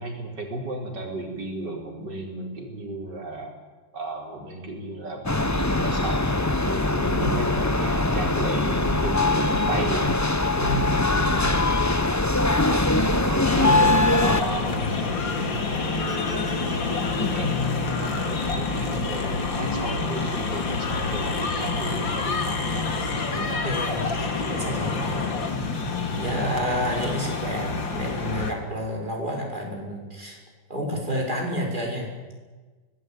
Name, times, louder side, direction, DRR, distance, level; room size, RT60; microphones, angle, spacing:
voice 1, 0.0-3.5 3.9-11.6 12.0-12.2 12.7-12.8 13.1-14.0 14.2-22.9 26.3-26.5, right 1 dB, 65° right, 2 dB, 5.5 m, -34 dB
sound 1, 5.2-14.4, left 2 dB, 15° left, 0.7 m, -22 dB
voice 2, 7.0-7.6 10.5-11.7 23.3-25.3 26.2-30.4 30.7-32.1, equal, 25° right, 0 dB, 6.2 m, -30 dB
sound 2, 13.4-28.5, left 4 dB, 85° left, 3.1 m, -28 dB
24.5 x 19.0 x 9.3 m, 1.3 s
omnidirectional pair, 2.0 m